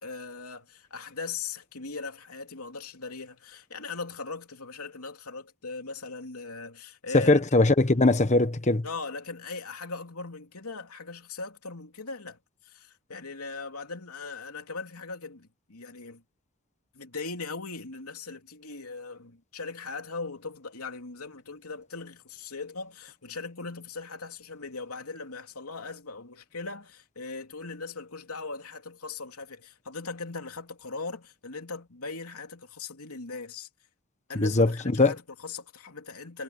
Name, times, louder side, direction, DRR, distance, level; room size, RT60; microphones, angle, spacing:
voice 1, 0.0-7.4 8.8-16.2 16.9-33.7 34.3-36.4, left 4 dB, 85° left, 3.1 m, -39 dB
voice 2, 7.1-8.8 34.4-34.7 35.0-35.1, left 2 dB, 35° left, 1.2 m, -20 dB
head